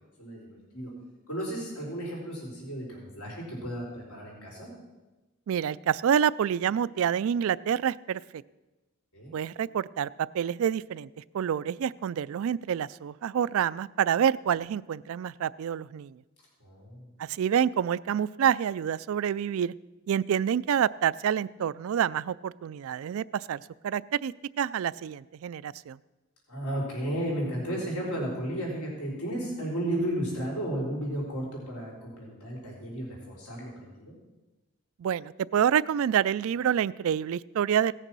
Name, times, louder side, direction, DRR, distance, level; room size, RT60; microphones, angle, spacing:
voice 1, 0.2-0.9 1.3-4.7 9.1-9.3 16.6-17.1 26.5-34.1, right 1 dB, 85° left, -3 dB, 4.0 m, -34 dB
voice 2, 5.5-8.2 9.3-10.1 10.3-11.1 11.3-16.2 17.2-19.7 20.1-26.0 35.0-37.9, right 8 dB, 70° right, 19 dB, 0.3 m, -27 dB
17.0 x 6.7 x 6.1 m, 1.1 s
head